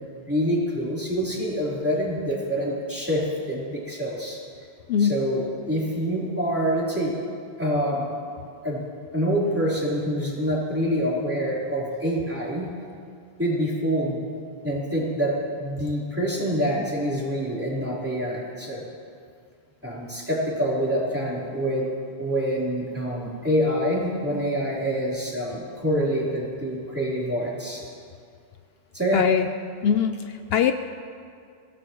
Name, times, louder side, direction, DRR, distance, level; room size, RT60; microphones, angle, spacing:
voice 1, 0.3-4.4 5.0-7.2 7.6-8.1 8.6-8.8 9.1-12.7 13.4-14.2 14.6-18.8 19.8-21.9 22.2-27.8 28.9-29.2, equal, 10° right, -7 dB, 3.7 m, -26 dB
voice 2, 4.9-5.2 29.1-29.5 29.8-30.7, left 8 dB, 70° left, 9 dB, 0.8 m, -22 dB
23.0 x 17.5 x 3.1 m, 2.3 s
omnidirectional pair, 1.1 m